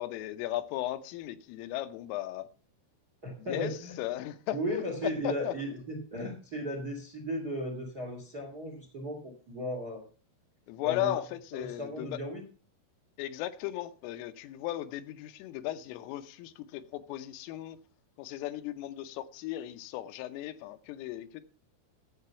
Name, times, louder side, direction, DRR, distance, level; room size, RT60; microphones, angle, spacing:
voice 1, 0.0-2.5 3.4-5.6 10.7-12.2 13.2-17.8 18.2-21.4, left 14 dB, 90° left, 3.4 m, -36 dB
voice 2, 3.2-3.9 4.5-10.0 10.8-11.1 11.5-12.4, equal, 50° right, 1.1 m, -36 dB
12.0 x 7.7 x 5.6 m
omnidirectional pair, 5.7 m